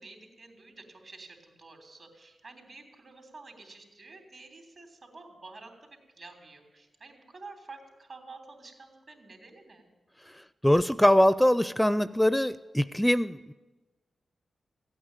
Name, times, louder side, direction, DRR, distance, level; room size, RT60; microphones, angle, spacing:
voice 1, 0.0-9.9, right 3 dB, 60° right, 4 dB, 3.3 m, -49 dB
voice 2, 10.6-13.5, equal, 5° left, 16 dB, 0.5 m, -23 dB
15.5 x 8.8 x 9.0 m, 1.2 s
supercardioid pair, 45°, 0 cm